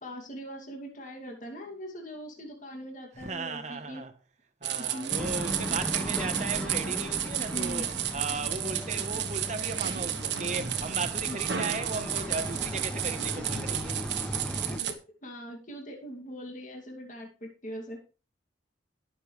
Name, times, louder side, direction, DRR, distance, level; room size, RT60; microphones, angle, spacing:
voice 1, 0.0-4.0 4.8-5.3 7.3-7.8 11.3-11.4 15.2-18.0, equal, 45° left, 2.5 m, -41 dB
voice 2, 3.1-4.1 4.6-14.0, right 3 dB, 40° right, 1.2 m, -36 dB
sound 1, 4.6-14.9, right 10 dB, 75° right, 1.3 m, -32 dB
sound 2, 5.1-14.8, equal, 5° left, 1.1 m, -37 dB
20.0 x 6.8 x 3.3 m
head